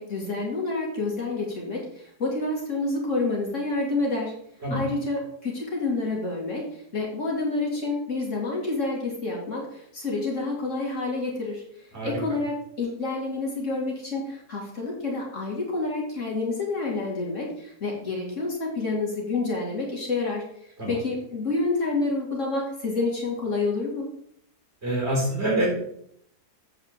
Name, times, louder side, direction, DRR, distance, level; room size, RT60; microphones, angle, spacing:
voice 1, 0.0-4.3 4.7-24.1, left 3 dB, 50° left, -2 dB, 2.6 m, -28 dB
voice 2, 24.8-25.7, right 1 dB, 40° right, -2 dB, 4.0 m, -25 dB
8.1 x 4.8 x 6.6 m, 0.70 s
omnidirectional pair, 1.6 m